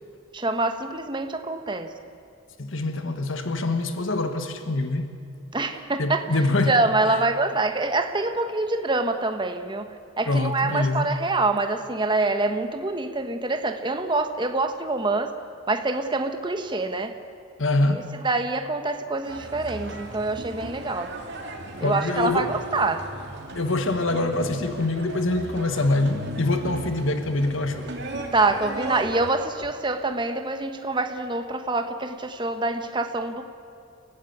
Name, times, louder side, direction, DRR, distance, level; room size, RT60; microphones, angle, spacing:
voice 1, 0.3-1.9 5.5-6.2 6.7-15.4 15.7-17.1 17.9-21.1 21.8-23.1 28.3-33.4, right 2 dB, 20° right, 1.2 m, -25 dB
voice 2, 2.6-5.1 6.0-6.8 10.3-11.1 17.6-18.1 21.7-22.5 23.5-27.9, left 2 dB, 70° left, 1.4 m, -24 dB
sound 1, 19.2-29.3, right 2 dB, 55° right, 2.8 m, -37 dB
29.5 x 15.5 x 9.4 m
head